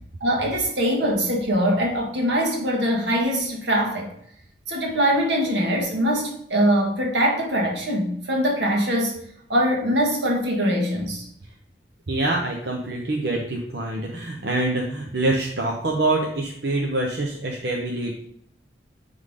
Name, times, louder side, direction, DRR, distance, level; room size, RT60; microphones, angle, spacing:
voice 1, 0.2-4.1 4.7-9.2 9.5-11.3, equal, 85° right, 0 dB, 1.7 m, -22 dB
voice 2, 12.1-18.1, right 2 dB, 65° right, -1 dB, 0.9 m, -25 dB
9.9 x 3.6 x 3.7 m, 0.70 s
head